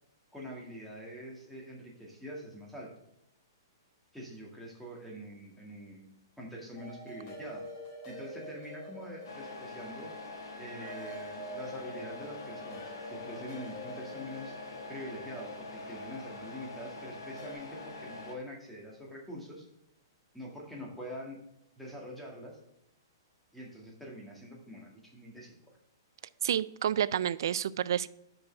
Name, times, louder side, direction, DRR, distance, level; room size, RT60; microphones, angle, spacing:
voice 1, 0.3-2.9 4.1-7.7 8.1-10.1 10.6-14.5 14.9-19.7 20.3-21.4 21.8-22.6 23.5-25.6, equal, ahead, -2 dB, 1.9 m, -45 dB
sound 1, 6.7-17.5, right 1 dB, 40° left, 3.1 m, -47 dB
Truck, 9.2-18.4, left 3 dB, 85° left, 1.8 m, -45 dB
voice 2, 26.4-28.1, right 10 dB, 65° right, 18 dB, 0.4 m, -29 dB
6.0 x 5.4 x 5.6 m, 0.82 s
hypercardioid pair, 150°, 2 cm